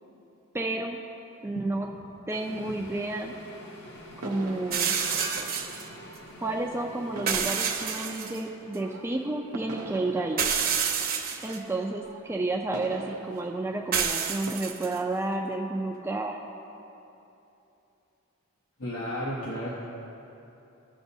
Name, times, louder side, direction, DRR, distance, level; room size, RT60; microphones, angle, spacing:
voice 1, 0.5-1.0 1.4-1.9 2.3-3.3 4.2-4.9 6.4-10.4 11.4-16.4, right 2 dB, 10° right, 0 dB, 0.4 m, -31 dB
voice 2, 1.5-1.9 18.8-19.8, equal, 80° left, -5 dB, 1.1 m, -33 dB
sound 1, 2.3-7.6, left 1 dB, 55° left, 1.0 m, -47 dB
sound 2, 3.1-14.5, right 3 dB, 85° right, 0.6 m, -45 dB
sound 3, 4.7-5.9 7.3-8.4 8.7-8.8 10.4-11.6 13.9-15.0, right 7 dB, 45° right, 0.8 m, -28 dB
17.0 x 7.0 x 2.7 m, 2.9 s
head